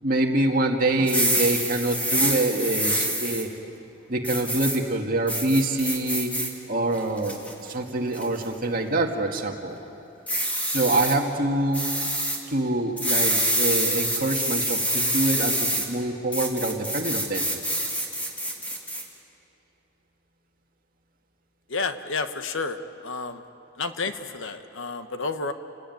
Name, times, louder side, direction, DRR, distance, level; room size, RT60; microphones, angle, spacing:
voice 1, 0.0-3.5 4.1-6.4 6.7-7.4 7.6-9.8 10.7-11.9 12.5-17.5, right 2 dB, 45° right, 2 dB, 2.1 m, -25 dB
sound 1, 1.0-3.4 4.2-4.8 5.3-6.5 7.0-7.5 8.1-8.4 10.3-11.1 11.7-12.4 13.0-15.9 16.3-19.0, right 1 dB, 5° left, 2.6 m, -26 dB
voice 2, 21.7-22.8 23.0-23.4 23.8-25.5, left 4 dB, 65° left, 9 dB, 1.2 m, -30 dB
29.5 x 18.5 x 9.4 m, 2.9 s
head